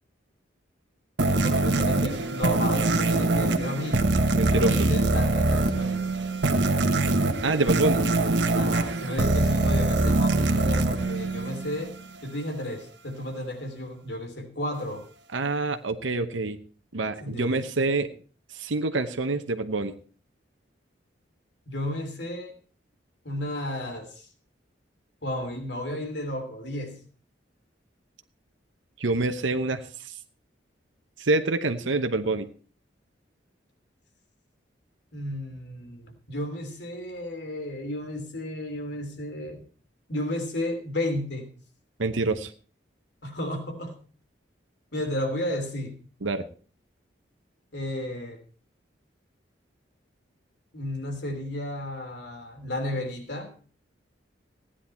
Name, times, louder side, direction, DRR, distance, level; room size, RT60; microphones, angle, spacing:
voice 1, 1.2-4.0 4.4-6.1 8.5-11.9 12.2-15.1 17.2-17.6 21.7-22.5 23.2-24.3 25.2-27.0 35.1-39.6 40.1-41.5 43.2-43.9 44.9-46.0 47.7-48.4 50.7-53.5, left 1 dB, 65° left, 4 dB, 3.2 m, -33 dB
sound 1, 1.2-12.0, right 2 dB, 65° right, 1.2 m, -23 dB
voice 2, 4.4-4.9 7.4-8.0 15.3-16.6 16.9-18.1 18.5-19.9 29.0-30.1 31.2-32.5 42.0-42.5 46.2-46.5, right 2 dB, 85° right, 7 dB, 0.9 m, -26 dB
16.0 x 10.0 x 4.3 m, 0.40 s
head